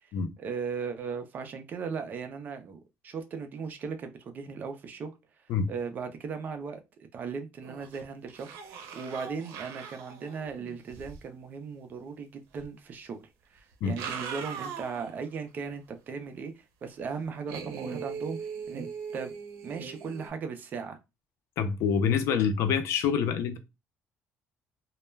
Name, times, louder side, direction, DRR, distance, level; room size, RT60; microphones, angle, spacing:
voice 1, 0.4-5.1 5.7-6.8 7.1-13.2 13.5-18.9 19.1-19.3 19.6-21.0, right 5 dB, 35° right, 0.4 m, -37 dB
sound 1, 7.6-8.0 8.3-11.2 12.6-12.7 13.7-15.2 15.6-15.7 17.5-20.3, right 6 dB, 85° right, 0.6 m, -40 dB
voice 2, 21.6-23.6, left 6 dB, 65° left, 0.5 m, -26 dB
2.2 x 2.1 x 3.1 m
cardioid pair, 155°, 5 cm